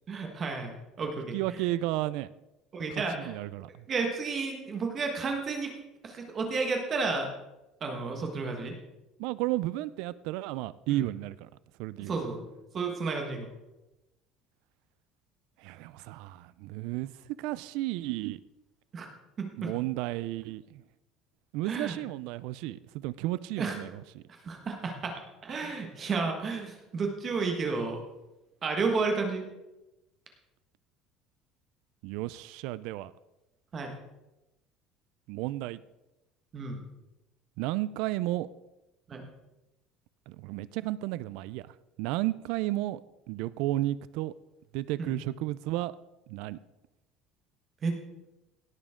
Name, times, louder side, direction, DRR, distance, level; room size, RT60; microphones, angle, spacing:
voice 1, 0.1-1.7 2.7-3.4 3.9-5.7 6.0-7.3 7.8-8.7 10.9-11.0 12.1-12.4 12.7-13.5 18.9-19.1 19.4-19.7 21.6-22.0 23.6-23.8 24.4-28.0 28.6-29.5 33.7-33.9 36.5-36.8 39.1-39.2 45.0-45.1 47.8-47.9, right 4 dB, 25° right, 3 dB, 1.5 m, -32 dB
voice 2, 1.3-2.3 3.2-3.7 9.2-11.5 11.8-12.1 15.6-17.1 17.4-18.4 19.6-20.8 21.5-24.2 32.0-33.1 35.3-35.8 37.6-38.5 40.3-43.0 43.3-44.3 44.7-45.9 46.3-46.6, right 16 dB, 65° right, 18 dB, 0.3 m, -33 dB
17.0 x 7.3 x 3.7 m, 0.98 s
cardioid pair, 175°, 0 cm